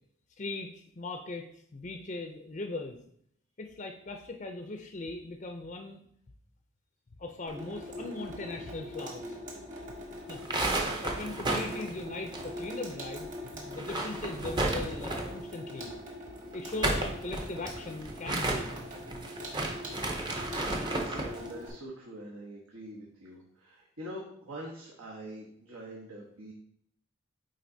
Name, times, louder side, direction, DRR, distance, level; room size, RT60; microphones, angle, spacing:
voice 1, 0.4-3.0 3.6-6.0 7.2-9.4 10.3-10.4 10.7-15.9 16.5-18.7, left 2 dB, 35° left, 4 dB, 0.5 m, -39 dB
Water tap faucet / Sink (filling or washing), 7.5-21.7, equal, 35° right, 1.4 m, -42 dB
sound 1, 10.3-12.9 13.2-13.3 13.7-15.4 16.5-21.4, right 2 dB, 20° right, 0.6 m, -33 dB
voice 2, 20.2-26.5, right 1 dB, 80° right, -3 dB, 1.1 m, -45 dB
9.2 x 3.9 x 2.7 m, 0.68 s
head